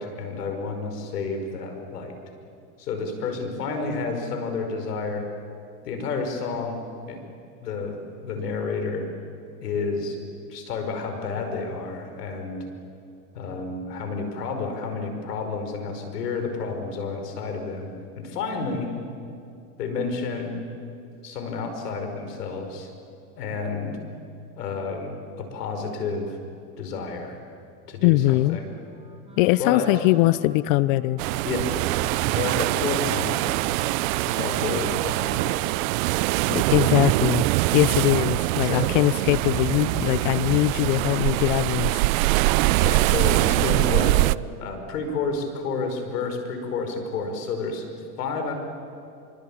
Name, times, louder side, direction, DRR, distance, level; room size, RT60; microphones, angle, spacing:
voice 1, 0.0-2.1 2.8-5.3 5.8-7.2 7.6-9.1 9.6-10.2 10.5-12.6 13.3-17.9 18.2-18.9 19.8-20.6 21.2-22.9 23.4-24.0 24.6-26.4 26.8-27.4 27.9-28.7 29.6-29.9 31.5-31.8 32.3-33.4 34.2-35.6 38.6-38.9 39.7-40.0 42.8-44.2 44.6-47.9 48.2-48.5, left 4 dB, 80° left, 6 dB, 5.3 m, -30 dB
voice 2, 28.0-28.6 29.4-31.2 36.5-37.5 37.7-42.0, left 18 dB, 55° left, 18 dB, 0.8 m, -21 dB
Wind instrument woodwind instrument, 28.7-35.4, right 3 dB, 10° right, 5.8 m, -49 dB
sound 1, 31.2-44.4, right 20 dB, 60° right, 0.7 m, -23 dB
25.5 x 24.0 x 8.8 m, 2.5 s
hypercardioid pair, 105°, 47 cm